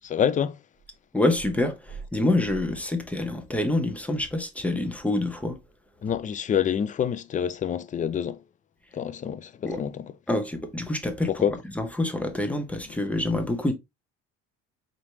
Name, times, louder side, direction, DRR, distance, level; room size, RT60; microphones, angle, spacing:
voice 1, 0.0-0.6 6.0-8.4 8.9-10.1 11.3-11.6, left 8 dB, 25° left, 0.4 m, -27 dB
voice 2, 1.1-5.6 9.6-9.8 10.3-11.3 11.8-13.7, left 1 dB, 5° left, 0.8 m, -26 dB
4.0 x 3.1 x 3.0 m
cardioid pair, 110°, 31 cm